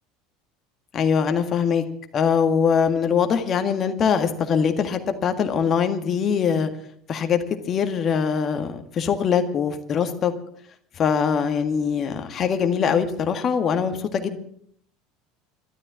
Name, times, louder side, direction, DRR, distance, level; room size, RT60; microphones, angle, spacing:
voice 1, 0.9-1.8 2.1-6.7 7.1-10.3 10.9-14.4, left 6 dB, 40° left, 7 dB, 1.8 m, -22 dB
13.0 x 13.0 x 7.6 m, 0.65 s
figure-of-eight pair, 70°, 0 cm